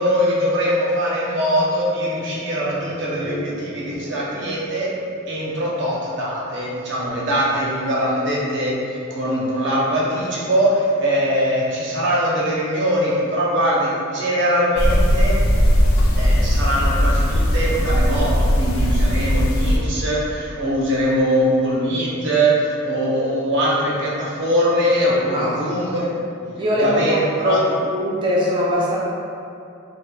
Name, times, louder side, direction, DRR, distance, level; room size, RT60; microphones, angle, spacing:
voice 1, 0.0-4.9 5.3-15.4 16.2-26.2 26.8-27.6, equal, 55° right, -6 dB, 0.7 m, -21 dB
sound 1, 1.7-6.2 6.5-6.6, left 1 dB, 25° left, 0.6 m, -39 dB
sound 2, 14.8-19.8, equal, 70° left, 0.4 m, -18 dB
voice 2, 25.1-26.0 26.4-27.6 27.9-29.0, equal, 25° right, -6 dB, 0.4 m, -22 dB
4.4 x 2.1 x 2.2 m, 2.6 s
head